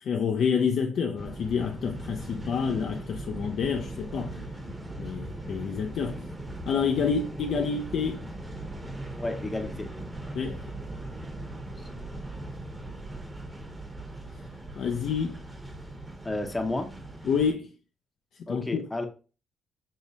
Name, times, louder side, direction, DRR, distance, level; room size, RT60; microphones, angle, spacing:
voice 1, 0.0-4.4 5.0-6.3 6.7-8.2 10.3-10.6 14.8-15.4 17.3-17.7 18.5-18.8, left 6 dB, 65° left, 0.4 m, -28 dB
sound 1, 1.2-17.5, right 1 dB, 10° right, 1.0 m, -39 dB
voice 2, 9.2-9.9 16.2-16.9 18.5-19.1, left 2 dB, 15° left, 0.7 m, -31 dB
5.5 x 2.0 x 3.9 m
cardioid pair, 90°, 0 cm